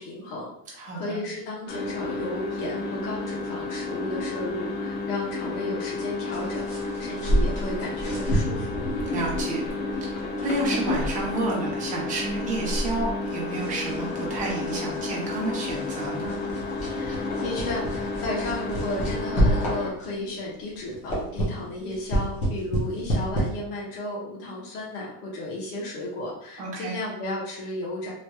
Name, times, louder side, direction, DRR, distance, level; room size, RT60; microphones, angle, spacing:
voice 1, 0.0-8.8 16.9-28.1, left 1 dB, 75° left, -5 dB, 1.1 m, -34 dB
voice 2, 0.8-1.2 9.1-9.6 10.1-16.3 26.6-27.0, right 2 dB, 15° right, -4 dB, 0.7 m, -30 dB
sound 1, 1.7-19.9, left 3 dB, 50° left, 0.7 m, -31 dB
sound 2, 6.3-20.3 20.7-23.5, right 1 dB, 15° left, 0.5 m, -30 dB
3.1 x 2.8 x 2.2 m, 0.75 s
supercardioid pair, 155°, 47 cm